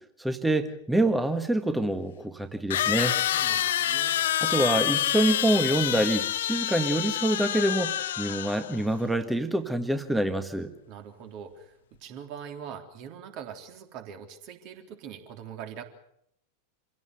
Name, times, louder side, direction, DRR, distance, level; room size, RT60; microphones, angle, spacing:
voice 1, 0.2-3.2 4.4-10.7, right 1 dB, 5° right, 8 dB, 1.6 m, -26 dB
sound 1, 1.1-1.2 2.7-8.8, left 11 dB, 60° left, 1.0 m, -27 dB
voice 2, 3.3-4.2 10.9-15.8, right 8 dB, 40° right, 5 dB, 3.4 m, -42 dB
27.0 x 16.5 x 8.1 m, 0.76 s
figure-of-eight pair, 90°, 0 cm